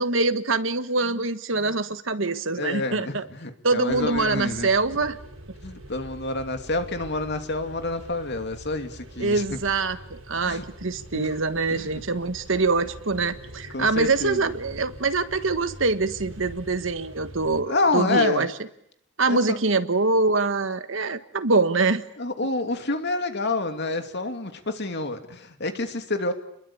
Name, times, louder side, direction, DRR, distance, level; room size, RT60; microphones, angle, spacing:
voice 1, 0.0-3.2 3.6-5.2 9.2-18.5 19.2-22.0, right 3 dB, 65° right, 10 dB, 1.6 m, -24 dB
voice 2, 2.6-4.7 5.6-9.6 10.4-10.6 11.1-11.3 11.7-11.9 13.7-14.5 17.7-18.5 19.3-19.6 22.2-26.3, left 2 dB, 55° left, 7 dB, 2.7 m, -28 dB
sound 1, 3.9-17.6, right 1 dB, 80° right, 8.0 m, -44 dB
29.0 x 22.0 x 8.7 m, 0.73 s
head